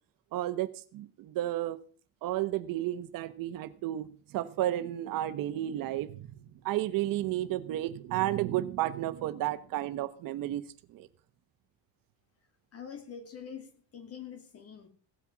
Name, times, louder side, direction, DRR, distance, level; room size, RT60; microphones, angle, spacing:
voice 1, 0.3-1.8 2.2-4.1 4.3-6.3 6.6-10.6 10.9-11.1, right 14 dB, 70° right, 12 dB, 1.1 m, -32 dB
voice 2, 12.7-14.9, left 7 dB, 45° left, 8 dB, 2.5 m, -45 dB
17.0 x 8.5 x 6.0 m, 0.42 s
cardioid pair, 155°, 35 cm